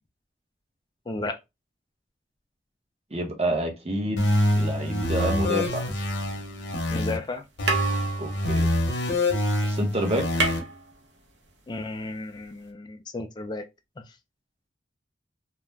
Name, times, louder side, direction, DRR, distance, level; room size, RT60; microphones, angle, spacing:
voice 1, 1.1-1.4 6.9-7.4 11.7-13.6, left 2 dB, 25° left, 0.3 m, -33 dB
voice 2, 3.1-4.3 4.6-5.9 8.2-8.7 9.6-10.4, right 1 dB, 35° right, 0.7 m, -28 dB
sound 1, 4.2-7.2 7.6-10.6, left 1 dB, 80° left, 0.7 m, -26 dB
sound 2, 5.2-6.3 7.2-7.4 7.6-9.5 9.8-9.9 10.1-11.5 12.7-12.8, right 4 dB, 80° right, 0.7 m, -31 dB
2.3 x 2.0 x 3.2 m
head